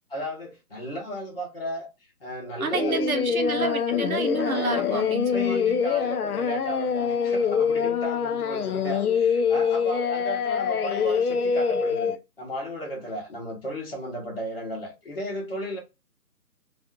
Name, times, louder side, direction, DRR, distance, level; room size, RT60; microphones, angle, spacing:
voice 1, 0.1-1.9 2.2-3.8 4.9-15.8, equal, 35° left, 1.0 m, -35 dB
voice 2, 2.6-5.8, right 4 dB, 60° right, 0.8 m, -29 dB
Singing, 2.7-12.2, left 6 dB, 65° left, 0.5 m, -25 dB
2.6 x 2.4 x 2.3 m
figure-of-eight pair, 165°, 49 cm